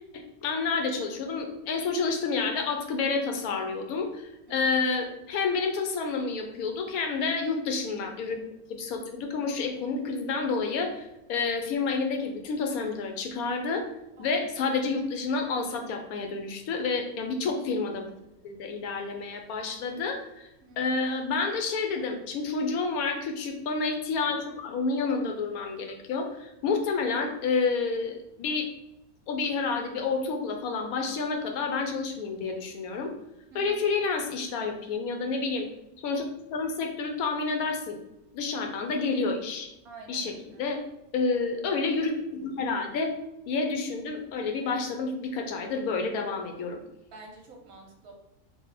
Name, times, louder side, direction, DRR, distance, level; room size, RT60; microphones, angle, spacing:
voice 1, 0.1-8.4 8.7-13.9 14.2-18.1 18.4-20.5 20.8-28.7 29.3-33.1 33.5-35.7 36.0-38.0 38.3-39.7 40.1-40.8 41.1-43.1 43.5-46.8, left 4 dB, 75° left, 4 dB, 1.1 m, -29 dB
voice 2, 20.6-21.0 33.5-33.8 39.8-40.7 47.1-48.1, right 3 dB, 75° right, 1 dB, 1.3 m, -48 dB
3.4 x 2.5 x 4.1 m, 0.88 s
omnidirectional pair, 1.6 m